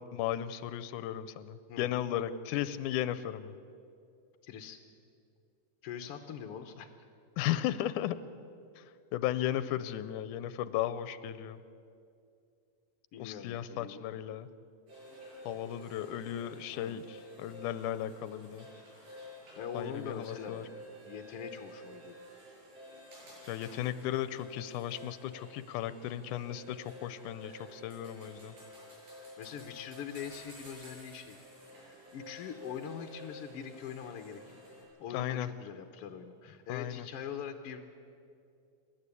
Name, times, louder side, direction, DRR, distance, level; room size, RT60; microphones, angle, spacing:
voice 1, 0.0-3.5 7.4-8.2 8.8-8.9 9.1-11.6 13.2-14.5 15.5-18.7 19.7-20.6 23.5-28.5 35.1-35.5 36.7-37.1, left 12 dB, 90° left, 14 dB, 2.2 m, -35 dB
voice 2, 4.4-4.8 5.8-6.9 13.1-14.1 16.7-17.0 19.6-22.3 26.0-26.1 29.4-31.4 32.1-34.5 35.0-37.8, left 7 dB, 65° left, 6 dB, 1.5 m, -43 dB
sound 1, 14.9-34.8, equal, 90° right, 8.1 m, -51 dB
28.0 x 12.0 x 8.3 m, 2.5 s
omnidirectional pair, 3.5 m